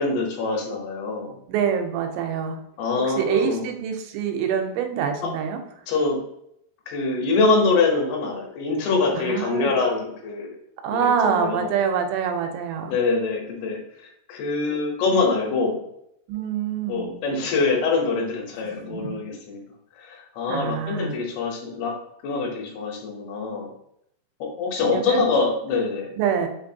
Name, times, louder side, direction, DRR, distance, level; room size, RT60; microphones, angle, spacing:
voice 1, 0.0-1.4 2.8-3.6 5.2-5.3 5.9-6.2 6.9-10.6 10.9-11.7 12.9-15.8 16.8-19.6 20.0-21.9 22.2-23.7 24.4-26.1, left 3 dB, 75° left, 0 dB, 2.7 m, -24 dB
voice 2, 1.5-2.6 3.0-5.6 9.1-9.7 10.8-13.0 16.3-17.1 18.6-19.2 20.5-21.1 24.8-25.2 26.2-26.5, right 7 dB, 90° right, 5 dB, 2.9 m, -25 dB
6.3 x 2.6 x 2.7 m, 0.74 s
omnidirectional pair, 5.0 m